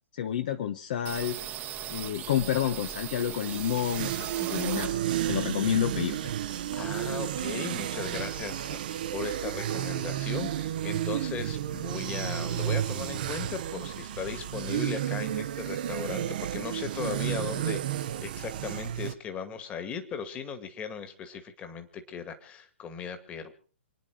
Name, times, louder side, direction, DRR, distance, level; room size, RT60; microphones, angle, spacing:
voice 1, 0.1-1.4 1.9-5.0 5.3-6.2, left 10 dB, 40° left, 8 dB, 1.0 m, -29 dB
sound 1, 1.0-5.4 5.7-7.1 7.4-7.5 7.8-8.5, right 11 dB, 25° right, 1.2 m, -39 dB
voice 2, 1.8-2.3 6.7-23.5, left 7 dB, 20° left, 8 dB, 2.1 m, -38 dB
sound 2, 3.4-19.1, right 11 dB, 45° right, 1.0 m, -32 dB
28.0 x 10.0 x 4.8 m, 0.42 s
figure-of-eight pair, 120°, 7 cm